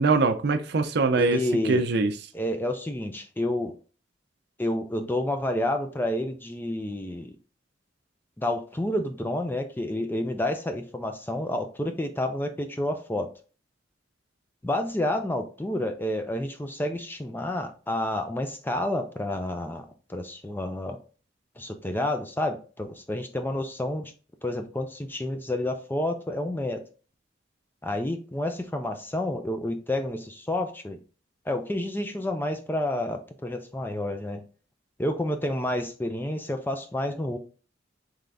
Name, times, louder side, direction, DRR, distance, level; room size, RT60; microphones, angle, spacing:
voice 1, 0.0-2.1, right 3 dB, 60° right, 0.5 m, -23 dB
voice 2, 1.1-1.8 2.3-3.8 4.6-7.4 8.4-13.3 14.6-21.0 21.6-24.1 24.4-26.8 27.8-31.0 31.5-34.4 35.0-37.4, left 1 dB, 10° left, 0.4 m, -29 dB
3.8 x 3.3 x 3.4 m
head